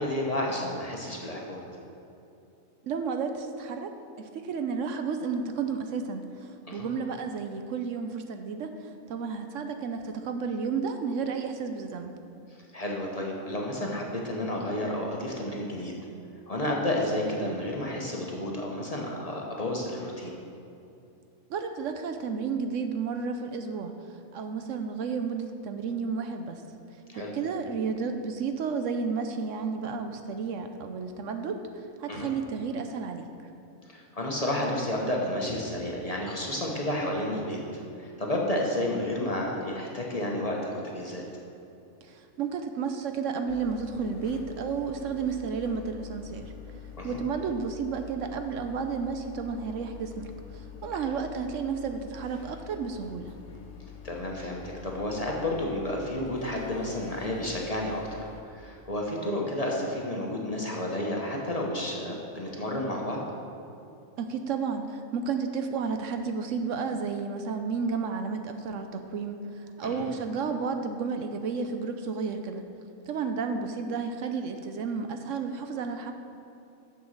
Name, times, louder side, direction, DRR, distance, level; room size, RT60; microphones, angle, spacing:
voice 1, 0.0-1.6 6.7-6.9 12.7-15.9 16.5-20.4 27.1-27.3 32.1-32.3 33.9-41.2 47.0-47.2 54.0-58.3 58.5-63.2 69.8-70.1, left 1 dB, 30° left, -1 dB, 1.0 m, -31 dB
voice 2, 2.8-12.1 21.5-23.9 24.3-26.6 27.1-31.6 32.0-33.5 42.0-46.5 47.0-53.3 64.2-72.7 73.1-76.1, right 5 dB, 70° right, 6 dB, 0.9 m, -32 dB
sound 1, 43.5-58.4, left 8 dB, 65° left, 1.0 m, -46 dB
7.1 x 6.9 x 6.4 m, 2.7 s
omnidirectional pair, 1.4 m